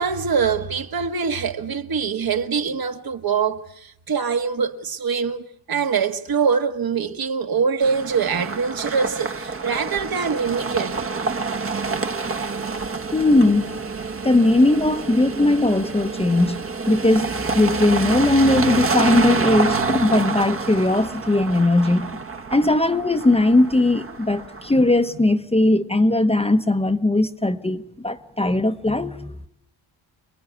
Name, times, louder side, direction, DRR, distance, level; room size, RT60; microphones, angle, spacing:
voice 1, 0.0-11.0, right 6 dB, 50° right, 1.7 m, -24 dB
sound 1, 7.8-24.8, right 4 dB, 30° right, 1.3 m, -27 dB
voice 2, 13.1-13.8 14.2-16.6 16.9-22.2 22.5-29.4, left 2 dB, 15° left, 1.1 m, -19 dB
28.0 x 21.0 x 9.5 m
cardioid pair, 120°, 46 cm